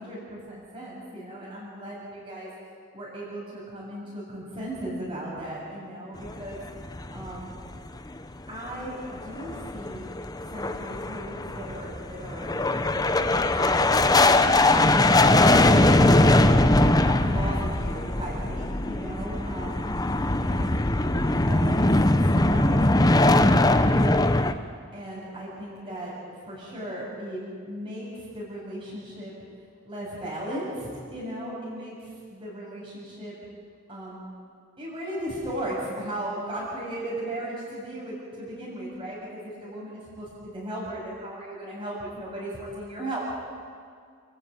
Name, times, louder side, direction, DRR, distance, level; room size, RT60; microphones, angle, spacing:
voice 1, 0.0-2.5 2.9-6.6 7.1-7.5 8.5-10.1 10.5-13.8 14.1-16.5 17.0-19.8 20.4-20.8 21.1-24.3 24.9-29.3 29.8-33.3 33.9-34.3 34.8-43.3, right 1 dB, 25° right, -6 dB, 7.4 m, -37 dB
sound 1, 6.2-7.9 8.2-8.3 8.7-8.8 9.2-24.5, left 2 dB, 15° left, 0.8 m, -21 dB
30.0 x 13.0 x 9.2 m, 2.1 s
head